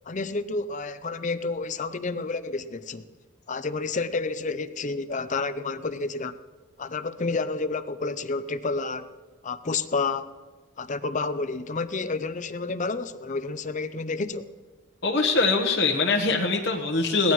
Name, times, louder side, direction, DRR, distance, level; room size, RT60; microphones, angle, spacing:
voice 1, 0.1-3.1 3.5-6.4 6.8-9.1 9.4-10.3 10.8-14.5, left 3 dB, 35° left, 0.6 m, -30 dB
voice 2, 15.0-17.3, left 3 dB, 55° left, 1.2 m, -23 dB
22.0 x 17.5 x 3.2 m
head